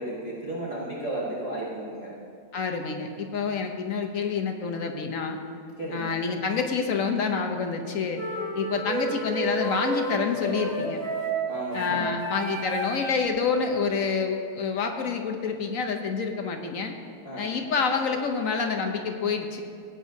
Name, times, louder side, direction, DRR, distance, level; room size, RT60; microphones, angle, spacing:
voice 1, 0.0-2.1 5.8-6.1 11.5-12.1 17.2-17.6, right 1 dB, 20° right, -8 dB, 1.5 m, -34 dB
voice 2, 2.5-5.4 5.9-8.2 8.5-11.0 11.7-16.9 17.4-19.6, left 5 dB, 60° left, 4 dB, 1.0 m, -28 dB
sound 1, 8.2-13.3, right 1 dB, 35° right, 1.5 m, -31 dB
18.0 x 8.8 x 2.7 m, 2.4 s
omnidirectional pair, 1.9 m